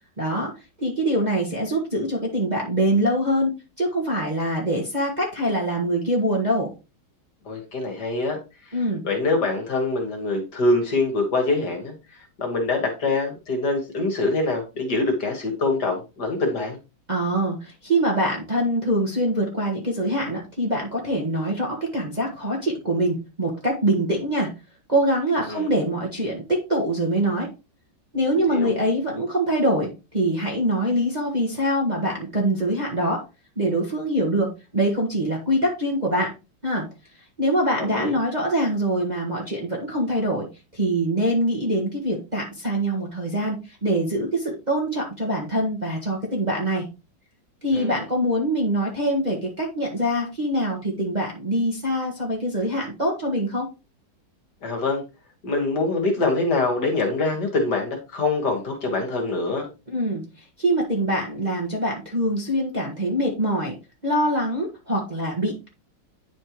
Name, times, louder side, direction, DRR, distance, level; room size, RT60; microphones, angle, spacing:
voice 1, 0.2-0.5 0.8-6.7 8.7-9.0 17.1-24.5 24.9-27.5 28.1-33.2 33.5-36.3 36.6-36.8 37.4-40.5 40.7-46.8 47.6-53.7 59.9-60.2 60.6-63.7 64.0-65.7, right 1 dB, 25° right, -2 dB, 1.4 m, -24 dB
voice 2, 7.5-8.4 8.6-8.8 9.0-16.8 25.4-25.7 28.4-28.7 37.8-38.1 47.7-48.0 54.6-55.0 55.4-59.7, left 2 dB, 55° left, 2 dB, 2.2 m, -24 dB
10.0 x 4.4 x 3.0 m, 0.29 s
omnidirectional pair, 2.2 m